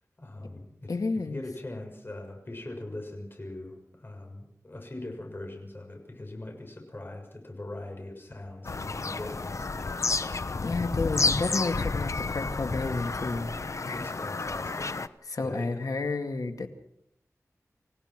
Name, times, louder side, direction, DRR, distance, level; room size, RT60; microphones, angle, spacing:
voice 1, 0.2-0.9 1.3-10.4 13.9-15.1 15.4-15.7, left 1 dB, 40° left, 3 dB, 6.8 m, -41 dB
voice 2, 0.9-1.4 10.6-13.5 13.8-14.0 15.3-16.7, left 3 dB, 85° left, 6 dB, 2.1 m, -31 dB
Bird vocalization bird call bird song, 8.6-15.1, left 3 dB, 60° left, 0.9 m, -31 dB
28.0 x 16.5 x 6.1 m, 0.76 s
wide cardioid pair, 65°, 6 cm